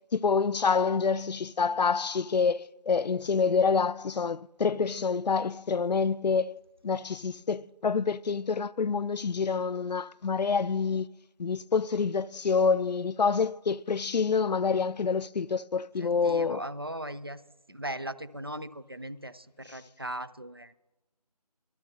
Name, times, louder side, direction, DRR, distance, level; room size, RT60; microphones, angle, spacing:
voice 1, 0.1-6.6 6.8-11.1 11.4-16.6, left 5 dB, 90° left, 0.4 m, -27 dB
voice 2, 16.0-17.4 17.7-20.7, right 1 dB, 35° right, 0.4 m, -38 dB
18.5 x 13.0 x 2.7 m
figure-of-eight pair, 165°, 21 cm